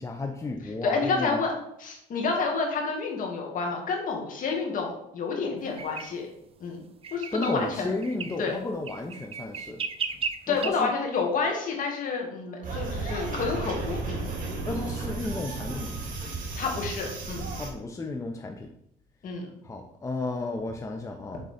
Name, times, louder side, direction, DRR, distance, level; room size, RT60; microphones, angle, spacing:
voice 1, 0.0-1.4 7.3-9.8 10.5-10.9 14.6-16.0 17.5-18.7 19.6-21.4, left 2 dB, 20° left, 3 dB, 0.6 m, -33 dB
voice 2, 0.8-1.5 1.8-6.3 6.6-6.8 7.1-7.9 8.4-8.6 10.5-14.3 16.6-17.5 19.2-19.5, left 4 dB, 50° left, 1 dB, 2.0 m, -29 dB
sound 1, 5.8-6.1 7.0-7.6 8.0-8.4 8.9-10.7, right 6 dB, 35° right, 0.5 m, -34 dB
sound 2, 12.6-17.7, right 3 dB, 55° right, 2.1 m, -34 dB
6.8 x 3.8 x 5.0 m, 0.76 s
cardioid pair, 110°, 17 cm